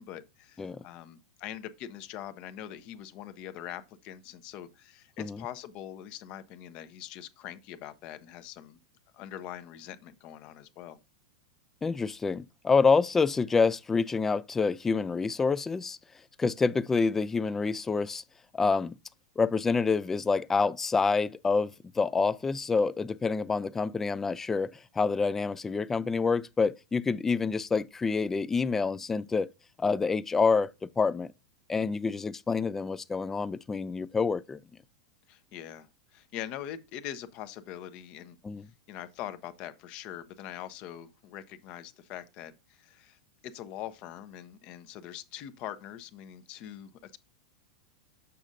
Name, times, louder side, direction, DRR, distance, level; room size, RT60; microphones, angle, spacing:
voice 1, 0.0-8.8 9.1-11.0 35.3-38.4 38.9-43.2 43.4-47.2, left 11 dB, 45° left, 0.8 m, -43 dB
voice 2, 11.8-16.0 16.4-18.2 18.5-19.0 19.4-29.5 29.8-31.3 31.7-34.6 38.4-38.7, left 4 dB, 15° left, 0.3 m, -27 dB
6.8 x 6.2 x 2.6 m
hypercardioid pair, 100°, 2 cm